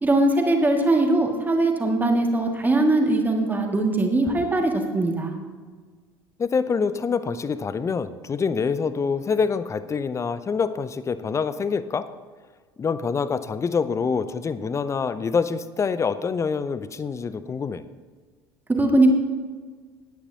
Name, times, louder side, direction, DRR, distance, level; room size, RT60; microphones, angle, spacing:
voice 1, 0.0-5.4 18.7-19.1, right 2 dB, 15° right, 2 dB, 2.1 m, -21 dB
voice 2, 6.4-12.1 12.8-17.8, left 5 dB, 25° left, 14 dB, 0.7 m, -26 dB
18.5 x 9.9 x 2.9 m, 1.5 s
figure-of-eight pair, 65°, 13 cm